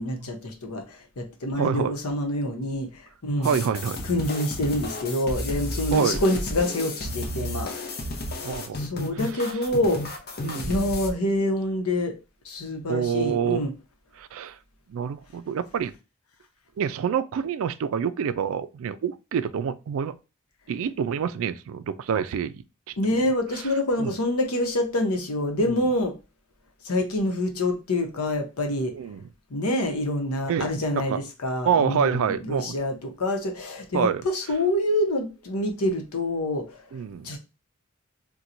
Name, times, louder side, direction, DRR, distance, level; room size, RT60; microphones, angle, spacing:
voice 1, 0.0-3.6 4.0-7.7 8.7-10.0 10.7-12.1 12.4-13.7 23.0-26.1 26.8-28.9 29.5-36.8 37.2-37.4, left 1 dB, 90° left, 0.8 m, -26 dB
voice 2, 1.6-1.9 3.4-4.0 5.9-6.2 8.4-8.8 10.4-10.9 12.9-13.6 14.2-14.6 14.9-15.9 16.8-20.2 20.7-22.5 24.0-24.1 25.6-25.8 28.9-29.2 30.5-31.2 31.6-32.7 33.9-34.2 36.9-37.3, right 7 dB, 65° right, 0.3 m, -27 dB
sound 1, 3.4-11.1, left 1 dB, 50° left, 0.7 m, -32 dB
4.3 x 2.2 x 2.6 m
head